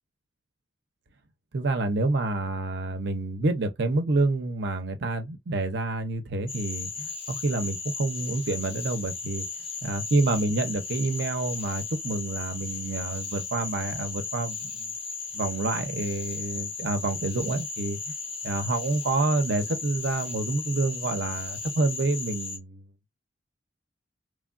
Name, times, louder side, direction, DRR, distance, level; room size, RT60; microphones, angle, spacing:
voice 1, 1.5-9.5 9.8-14.9 15.3-18.1 18.4-22.9, right 2 dB, 60° right, 0.6 m, -28 dB
Cricket / Frog, 6.5-22.6, left 4 dB, 30° left, 0.7 m, -36 dB
3.2 x 2.3 x 2.4 m
head